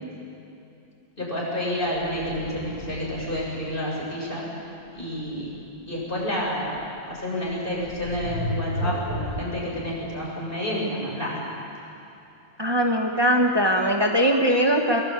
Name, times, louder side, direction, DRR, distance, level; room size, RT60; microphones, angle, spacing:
voice 1, 1.2-4.5 4.9-5.5 5.9-6.8 7.1-11.4, equal, 45° left, -4 dB, 7.9 m, -29 dB
sound 1, 2.0-3.7 6.8-6.9 7.8-9.6, equal, 85° left, 2.1 m, -33 dB
voice 2, 12.6-15.0, equal, 20° right, 1 dB, 1.3 m, -21 dB
23.0 x 23.0 x 9.0 m, 2.7 s
omnidirectional pair, 1.3 m